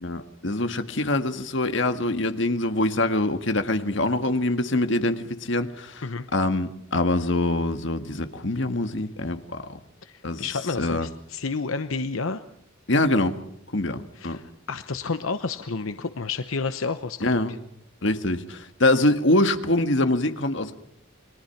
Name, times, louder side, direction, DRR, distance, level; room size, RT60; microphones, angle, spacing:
voice 1, 0.0-6.0 6.3-9.8 10.2-10.4 10.7-11.1 12.9-13.4 13.7-14.4 17.2-17.5 18.0-20.8, left 2 dB, 65° left, 1.8 m, -24 dB
voice 2, 10.0-12.4 14.2-17.6, left 4 dB, 85° left, 0.9 m, -30 dB
29.5 x 22.0 x 5.9 m
head